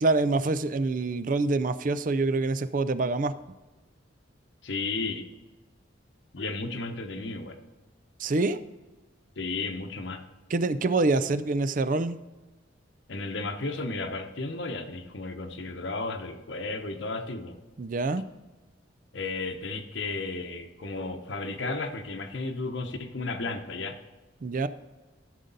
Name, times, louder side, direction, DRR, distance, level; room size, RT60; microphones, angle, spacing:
voice 1, 0.0-3.3 8.2-8.6 10.5-12.2 17.8-18.2 24.4-24.7, right 3 dB, 45° right, 14 dB, 0.4 m, -26 dB
voice 2, 4.6-5.3 6.3-7.6 9.4-10.2 13.1-17.6 19.1-24.0, left 3 dB, 65° left, 5 dB, 0.9 m, -33 dB
14.0 x 6.6 x 4.0 m, 1.2 s
head